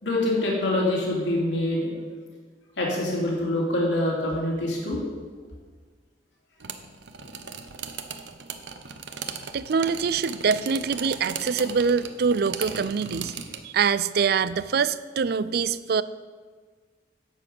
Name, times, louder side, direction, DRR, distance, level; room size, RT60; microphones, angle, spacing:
voice 1, 0.0-1.9 2.8-5.0, left 1 dB, 85° left, -3 dB, 2.9 m, -25 dB
sound 1, 6.6-13.6, right 6 dB, 80° right, 0.9 m, -37 dB
voice 2, 9.5-13.3 13.6-16.0, right 5 dB, 60° right, 17 dB, 0.4 m, -24 dB
10.5 x 7.1 x 7.8 m, 1.5 s
head